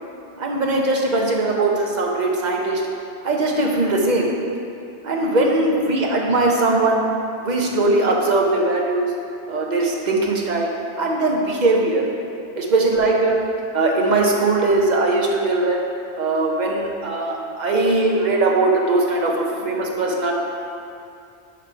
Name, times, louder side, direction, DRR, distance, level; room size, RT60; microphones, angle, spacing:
voice 1, 0.4-2.8 3.2-4.3 5.0-7.0 7.4-9.1 9.5-12.0 12.5-13.4 13.7-15.8 16.2-20.3, right 2 dB, 45° right, -1 dB, 0.8 m, -20 dB
6.0 x 4.7 x 4.7 m, 2.5 s
omnidirectional pair, 1.1 m